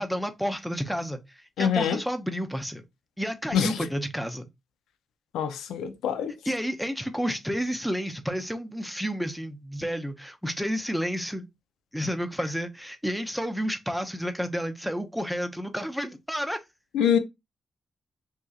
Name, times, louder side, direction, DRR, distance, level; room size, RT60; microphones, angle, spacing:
voice 1, 0.0-2.8 3.2-4.5 6.4-11.5 11.9-16.6, equal, ahead, 0.5 m, -30 dB
voice 2, 1.6-2.0 3.5-3.7 5.3-6.3 16.9-17.2, left 8 dB, 90° left, 0.3 m, -24 dB
2.8 x 2.4 x 2.3 m
supercardioid pair, 55°, 0 cm